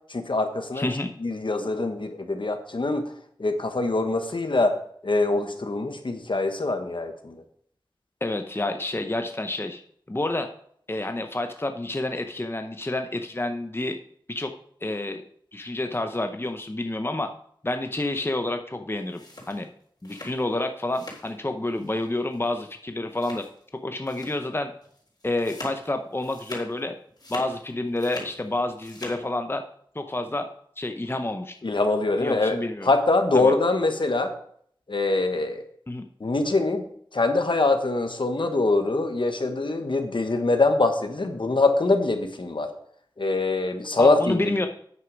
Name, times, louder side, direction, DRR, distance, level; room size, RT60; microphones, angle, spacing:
voice 1, 0.1-0.9 1.2-3.0 3.4-4.7 5.0-7.4 31.6-32.6 32.8-34.3 34.9-35.6 36.2-36.8 37.1-42.7 43.2-44.5, left 3 dB, 70° left, 6 dB, 1.4 m, -23 dB
voice 2, 0.7-1.2 8.2-9.8 10.1-10.5 10.9-14.0 14.3-14.5 14.8-15.2 15.5-17.3 17.6-19.7 20.0-23.4 23.8-24.7 25.2-26.9 27.3-29.6 29.9-30.5 30.8-31.5 32.2-32.9 33.3-33.5 35.9-36.0 44.0-44.7, left 2 dB, 30° left, 6 dB, 0.8 m, -29 dB
sound 1, 19.0-21.4 21.7-22.1 22.3-22.5 23.1-23.7 24.1-24.5 24.8-26.8 27.1-28.4 28.7-29.2, left 2 dB, 50° left, 3.9 m, -42 dB
9.2 x 6.5 x 5.3 m, 0.63 s
wide cardioid pair, 50°, 9 cm